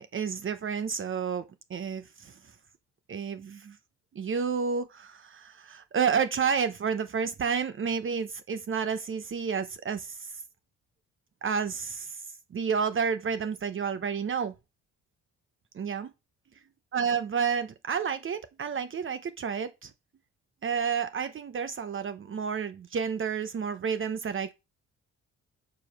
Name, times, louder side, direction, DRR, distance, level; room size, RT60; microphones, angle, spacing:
voice 1, 0.0-2.4 3.1-3.8 4.1-10.3 11.4-12.2 12.5-14.5 15.7-16.1 16.9-19.9 20.6-24.5, right 6 dB, 40° right, 0.9 m, -30 dB
7.2 x 4.7 x 5.9 m
cardioid pair, 90°, 30 cm